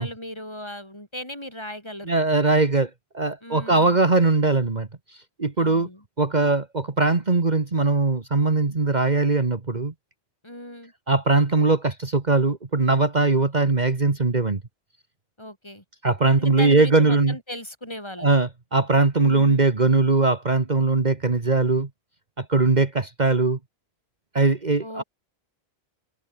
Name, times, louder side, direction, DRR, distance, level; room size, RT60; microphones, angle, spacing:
voice 1, 0.0-2.1 3.4-4.0 5.6-6.0 10.4-10.9 15.4-15.8 16.4-18.3 19.2-19.6 24.8-25.0, left 1 dB, 25° left, 5.7 m, -37 dB
voice 2, 2.1-4.9 5.4-5.9 6.2-9.9 11.1-14.6 16.0-17.4 18.2-21.9 22.4-23.6 24.4-25.0, right 3 dB, 40° right, 1.8 m, -20 dB
omnidirectional pair, 1.1 m